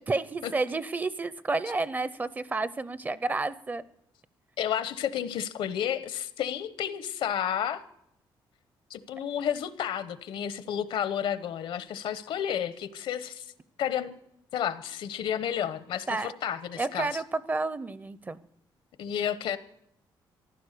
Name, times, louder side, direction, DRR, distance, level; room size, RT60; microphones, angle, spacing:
voice 1, 0.1-3.8 16.1-16.3 16.8-18.4, right 3 dB, 20° right, 17 dB, 0.5 m, -30 dB
voice 2, 4.6-7.8 8.9-13.5 13.8-14.2 14.5-17.2 19.0-19.6, left 9 dB, 75° left, 13 dB, 1.0 m, -31 dB
15.0 x 12.0 x 6.7 m, 0.76 s
cardioid pair, 150°, 9 cm